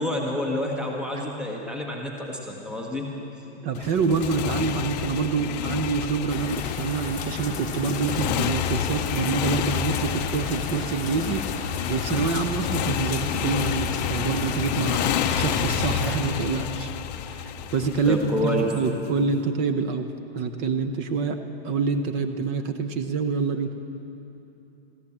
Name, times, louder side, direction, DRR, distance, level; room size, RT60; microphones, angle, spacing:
voice 1, 0.0-3.1 18.0-18.7, left 1 dB, 5° right, 1 dB, 1.1 m, -28 dB
voice 2, 3.6-11.4 11.9-16.9 17.3-21.4 21.6-23.7, right 4 dB, 20° right, 7 dB, 0.4 m, -26 dB
Motorcycle, 3.7-18.9, left 9 dB, 40° left, 0.6 m, -29 dB
sound 1, 6.3-16.2, left 5 dB, 20° left, 1.3 m, -33 dB
14.5 x 11.5 x 7.2 m, 2.9 s
hypercardioid pair, 145°, 33 cm